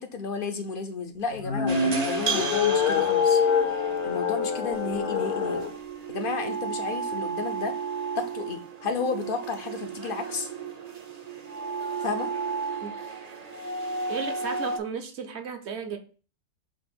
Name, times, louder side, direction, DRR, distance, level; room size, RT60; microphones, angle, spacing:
voice 1, 0.0-3.4 4.0-5.6 6.1-7.8 8.2-10.5 12.0-12.3, left 5 dB, 55° left, 0.6 m, -32 dB
sound 1, 1.3-5.7, left 6 dB, 85° left, 1.5 m, -25 dB
sound 2, 1.7-14.8, right 5 dB, 40° right, 0.6 m, -34 dB
voice 2, 14.1-16.0, right 6 dB, 55° right, 0.9 m, -34 dB
7.5 x 2.5 x 5.1 m
omnidirectional pair, 1.5 m